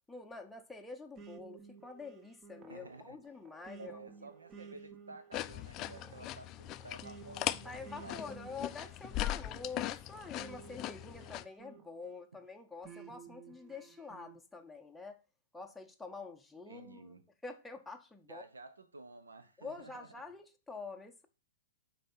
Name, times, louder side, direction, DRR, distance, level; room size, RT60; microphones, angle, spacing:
voice 1, 0.1-3.9 7.6-15.2 15.5-17.1 17.4-18.4 19.6-21.3, left 4 dB, 5° left, 0.6 m, -47 dB
sound 1, 1.2-12.2 12.8-14.4, right 6 dB, 25° right, 0.8 m, -54 dB
voice 2, 2.7-3.2 3.8-8.4 16.7-17.3 18.3-20.1, right 3 dB, 85° right, 0.8 m, -52 dB
sound 2, 5.3-11.4, left 14 dB, 35° left, 0.3 m, -40 dB
6.3 x 4.1 x 4.3 m
hypercardioid pair, 115°, 0 cm